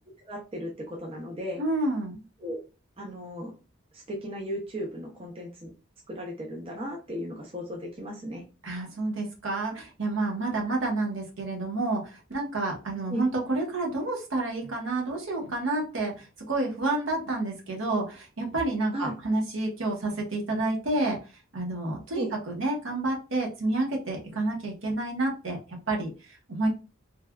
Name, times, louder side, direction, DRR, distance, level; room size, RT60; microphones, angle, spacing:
voice 1, 0.3-1.6 2.4-2.6 3.0-3.5 3.9-5.7 6.1-8.4 13.1-13.3 18.9-19.1 22.1-22.3, equal, 25° right, -1 dB, 0.5 m, -35 dB
voice 2, 1.6-2.2 8.6-21.2 21.5-26.7, right 2 dB, 70° right, 0 dB, 0.9 m, -29 dB
3.2 x 2.3 x 2.2 m, 0.31 s
head